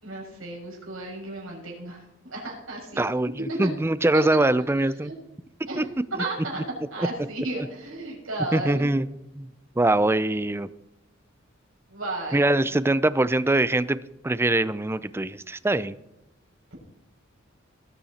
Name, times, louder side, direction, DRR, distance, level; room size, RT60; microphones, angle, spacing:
voice 1, 0.0-3.1 3.6-3.7 4.1-4.4 5.0-5.1 5.7-5.9 6.2-8.9 11.9-12.5, right 2 dB, 85° right, -2 dB, 6.4 m, -34 dB
voice 2, 3.0-5.1 5.8-5.9 7.0-7.1 8.5-9.1 9.4-9.5 9.8-10.7 12.3-14.0 14.2-15.9, right 2 dB, 10° right, 16 dB, 0.5 m, -23 dB
20.0 x 8.8 x 4.2 m, 0.90 s
head